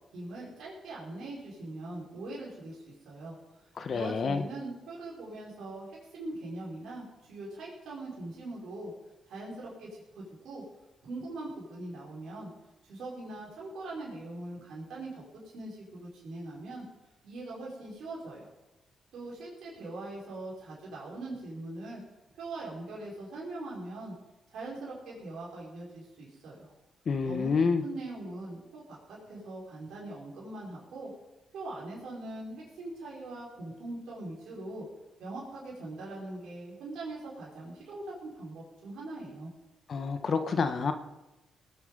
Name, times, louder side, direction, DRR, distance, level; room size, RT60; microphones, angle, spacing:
voice 1, 0.1-8.9 9.3-10.6 11.0-12.5 12.8-15.2 15.5-16.8 17.2-18.5 19.1-22.0 22.4-24.1 24.5-26.6 27.2-27.5 27.8-31.1 31.5-34.9 35.2-39.5, right 2 dB, 80° right, -5 dB, 4.7 m, -41 dB
voice 2, 3.8-4.4 27.1-27.8 39.9-40.9, left 5 dB, 60° left, 8 dB, 1.2 m, -28 dB
19.5 x 8.3 x 5.4 m, 1.0 s
supercardioid pair, 60°, 0 cm